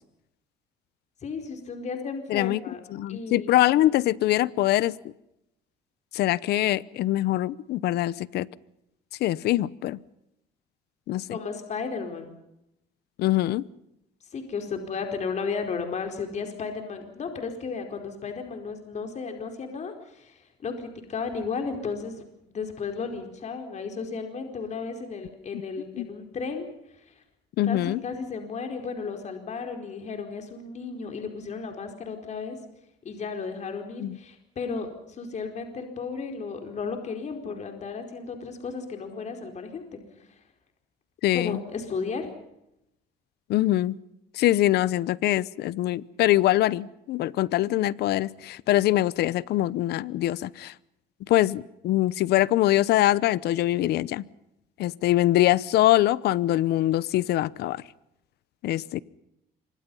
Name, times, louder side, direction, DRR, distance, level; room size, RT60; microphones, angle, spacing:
voice 1, 1.2-2.8 3.1-3.5 11.3-12.3 14.3-26.7 27.1-27.2 27.7-32.6 33.0-39.8 40.3-40.4 41.3-42.3, left 5 dB, 45° left, 5 dB, 4.7 m, -34 dB
voice 2, 2.3-2.6 2.9-5.0 6.1-8.5 9.2-10.0 11.1-11.4 13.2-13.6 26.0-26.1 27.6-28.0 34.0-34.2 41.2-41.6 43.5-44.0 44.3-50.7 51.3-54.2 54.8-57.8 58.6-59.0, left 15 dB, 75° left, 20 dB, 0.9 m, -23 dB
27.5 x 24.5 x 5.6 m, 0.84 s
cardioid pair, 110°, 17 cm